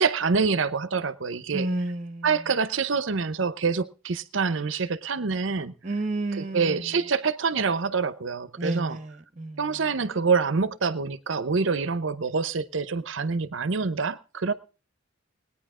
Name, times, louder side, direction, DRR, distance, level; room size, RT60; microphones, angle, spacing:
voice 1, 0.0-1.7 2.2-5.7 6.4-9.0 9.6-14.5, right 5 dB, 65° right, 0.7 m, -26 dB
voice 2, 1.5-2.4 5.8-6.9 8.6-9.8, right 2 dB, 35° right, 1.0 m, -31 dB
20.0 x 9.7 x 3.7 m
head